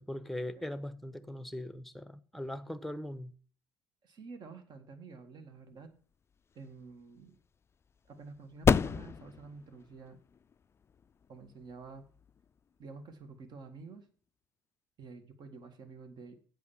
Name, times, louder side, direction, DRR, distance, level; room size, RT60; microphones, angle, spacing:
voice 1, 0.0-3.3, left 1 dB, ahead, 0.9 m, -40 dB
voice 2, 4.0-5.9 6.5-7.4 8.1-10.2 11.3-12.0 12.8-14.1 15.0-16.3, right 4 dB, 45° right, 1.9 m, -49 dB
sound 1, 6.0-13.3, left 6 dB, 25° left, 0.4 m, -34 dB
8.3 x 5.8 x 7.3 m
hypercardioid pair, 60°, 10 cm